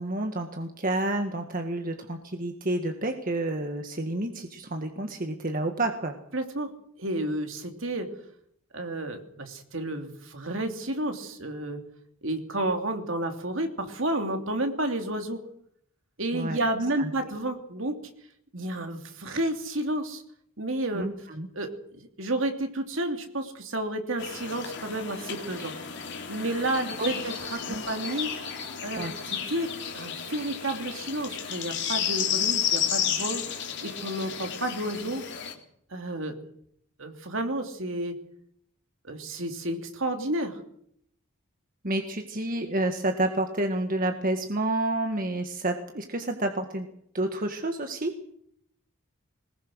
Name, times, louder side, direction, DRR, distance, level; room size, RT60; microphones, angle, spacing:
voice 1, 0.0-6.1 16.3-16.6 17.0-17.3 20.9-21.5 27.0-27.1 27.7-27.8 29.0-29.1 41.8-46.9 47.1-48.1, right 1 dB, 40° right, 5 dB, 1.7 m, -29 dB
voice 2, 6.3-6.7 7.0-8.1 8.7-11.8 12.2-15.5 16.2-18.1 18.5-20.2 20.6-21.3 21.5-25.7 26.3-28.3 28.8-35.2 35.9-36.4 37.0-38.2 39.0-40.6, right 1 dB, 60° right, 5 dB, 2.9 m, -31 dB
sound 1, 24.2-35.5, left 8 dB, 55° left, 3.4 m, -32 dB
21.5 x 20.5 x 6.4 m, 0.69 s
head